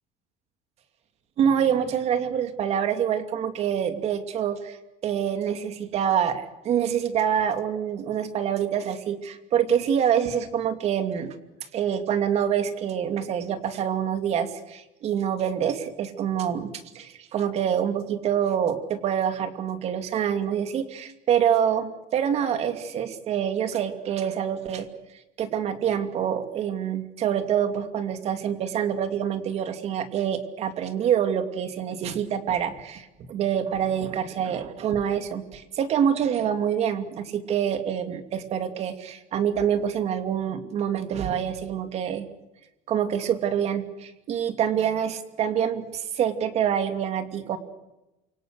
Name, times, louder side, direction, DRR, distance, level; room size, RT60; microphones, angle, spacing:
voice 1, 1.4-4.8 5.0-11.3 11.7-24.9 25.4-42.3 42.9-47.6, right 8 dB, 45° right, 8 dB, 2.6 m, -26 dB
28.5 x 25.0 x 6.6 m, 0.99 s
cardioid pair, 160°, 16 cm